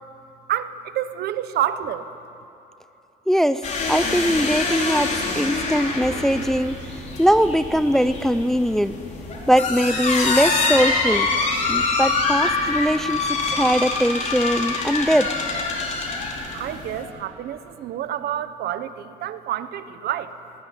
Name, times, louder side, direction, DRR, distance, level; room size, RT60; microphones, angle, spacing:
voice 1, 0.5-2.1 16.5-20.3, right 11 dB, 70° right, 12 dB, 1.1 m, -28 dB
voice 2, 3.3-8.9 9.5-11.3 11.7-15.3, equal, ahead, 12 dB, 0.5 m, -21 dB
sound 1, 3.6-17.0, left 3 dB, 45° left, 4.0 m, -25 dB
20.5 x 15.5 x 9.8 m, 2.8 s
cardioid pair, 110°, 17 cm